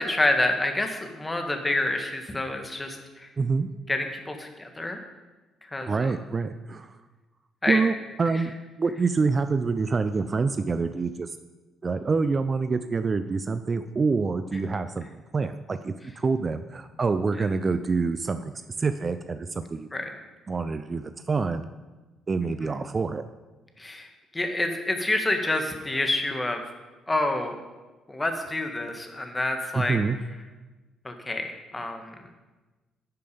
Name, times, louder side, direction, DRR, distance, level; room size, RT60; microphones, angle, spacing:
voice 1, 0.0-3.3 3.9-5.0 5.7-6.1 7.6-7.8 19.9-20.1 22.6-22.8 23.8-24.1 24.3-26.6 27.1-27.6 28.1-30.0 31.0-32.1, left 2 dB, 20° left, 5 dB, 1.6 m, -28 dB
voice 2, 3.4-3.7 5.9-6.9 7.7-11.3 11.8-18.5 18.8-19.9 20.5-21.7 22.3-23.2 29.7-30.2, right 4 dB, 35° right, 11 dB, 0.5 m, -26 dB
10.5 x 6.9 x 5.2 m, 1.2 s
hypercardioid pair, 45°, 0 cm